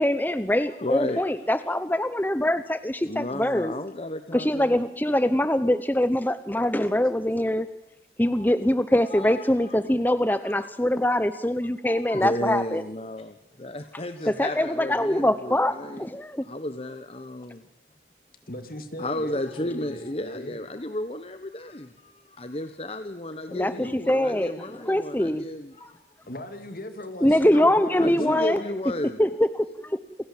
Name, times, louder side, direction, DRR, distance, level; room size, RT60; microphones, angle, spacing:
voice 1, 0.0-3.7 4.3-7.7 8.2-12.8 14.3-16.4 23.5-23.7 24.1-24.5 24.9-25.4 27.2-28.6 29.2-29.3 29.6-30.0, left 1 dB, 10° left, 12 dB, 0.7 m, -23 dB
voice 2, 0.7-1.3 1.6-1.7 3.0-4.8 8.3-8.5 9.1-10.1 10.4-10.7 11.8-16.1 16.4-17.7 19.0-26.0 28.0-29.2, left 1 dB, 35° left, 10 dB, 1.1 m, -33 dB
voice 3, 18.5-20.6 23.5-23.9 26.3-28.7, left 1 dB, 55° left, 8 dB, 2.8 m, -38 dB
28.5 x 17.0 x 7.4 m, 0.87 s
head